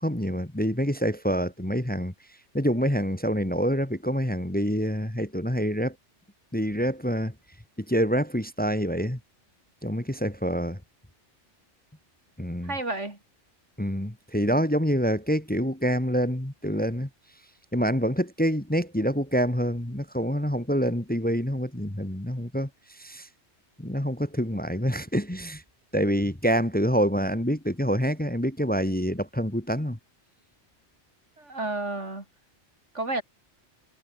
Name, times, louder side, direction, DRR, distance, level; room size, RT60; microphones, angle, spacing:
voice 1, 0.0-2.1 2.5-6.0 6.5-7.3 7.9-9.2 9.8-10.8 12.4-12.7 13.8-17.1 17.7-22.7 23.0-23.3 23.8-25.6 25.9-30.0, equal, 10° left, 1.7 m, -26 dB
voice 2, 12.6-13.2 31.4-32.2 32.9-33.2, right 2 dB, 85° right, 5.3 m, -31 dB
omnidirectional pair, 1.2 m